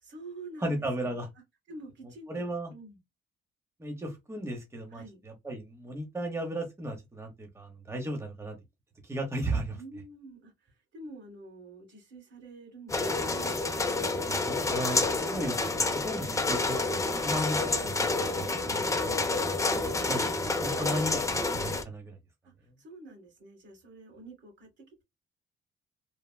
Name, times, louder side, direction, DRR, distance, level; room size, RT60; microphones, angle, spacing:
voice 1, 0.0-1.2 1.7-3.0 4.9-5.2 9.7-13.6 22.4-25.0, right 2 dB, 65° right, 1.8 m, -48 dB
voice 2, 0.6-1.3 2.3-2.7 3.8-8.6 9.0-9.8 14.2-18.0 18.3-19.3 20.1-22.2, right 1 dB, 15° right, 0.8 m, -35 dB
sound 1, 12.9-21.8, left 3 dB, 15° left, 0.5 m, -29 dB
3.3 x 2.1 x 2.2 m
cardioid pair, 90°, 20 cm